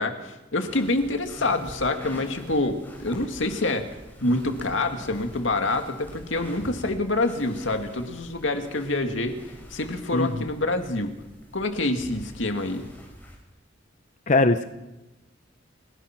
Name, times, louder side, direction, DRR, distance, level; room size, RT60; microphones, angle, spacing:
voice 1, 0.0-3.9 4.2-9.4 9.7-11.1 11.5-12.9, left 2 dB, 85° left, 5 dB, 2.3 m, -26 dB
sound 1, 0.6-13.4, equal, 10° left, 6.0 m, -45 dB
voice 2, 14.3-14.6, left 2 dB, 40° left, 9 dB, 0.9 m, -20 dB
29.5 x 16.5 x 6.0 m, 1.0 s
head